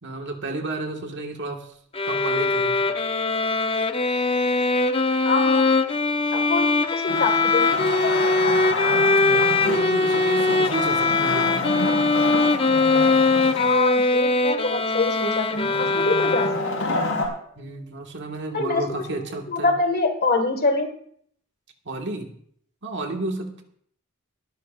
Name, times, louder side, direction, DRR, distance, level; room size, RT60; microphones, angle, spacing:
voice 1, 0.0-1.7 2.0-2.9 9.2-11.7 17.5-19.7 21.8-22.3 22.8-23.6, right 2 dB, 55° right, 3 dB, 1.7 m, -32 dB
sound 1, 1.9-16.9, left 3 dB, 25° left, 0.6 m, -21 dB
voice 2, 5.2-5.7 6.3-8.2 13.5-16.5 16.8-17.0 18.5-20.9, left 3 dB, 45° left, 6 dB, 1.8 m, -25 dB
Wood, 7.1-13.9 15.5-17.3, left 2 dB, 70° left, 4.8 m, -29 dB
20.5 x 12.5 x 2.5 m, 0.64 s
head